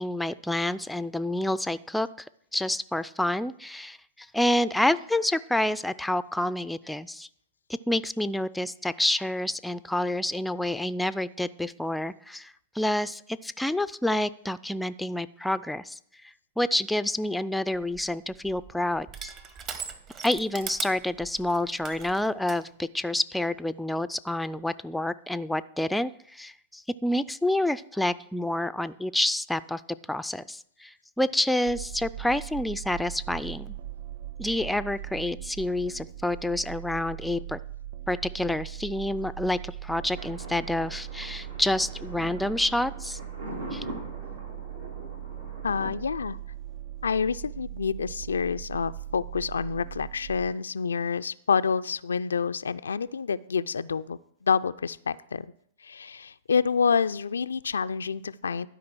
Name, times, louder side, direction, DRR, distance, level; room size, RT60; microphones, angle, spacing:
voice 1, 0.0-2.1 2.5-7.3 7.9-16.0 16.6-19.3 20.2-29.8 30.1-33.7 34.4-37.6 38.1-43.2 43.7-43.8, left 1 dB, 5° left, 13 dB, 0.3 m, -28 dB
Crushing, 17.7-22.6, right 6 dB, 35° right, 1.1 m, -40 dB
sound 1, 31.7-50.5, right 12 dB, 60° right, 0.5 m, -40 dB
Thunder, 40.1-45.9, right 1 dB, 80° right, 3.4 m, -42 dB
voice 2, 45.6-46.4 47.0-55.5 55.8-58.7, left 6 dB, 85° left, 14 dB, 0.3 m, -28 dB
12.0 x 5.0 x 6.1 m, 0.68 s
hypercardioid pair, 110°, 0 cm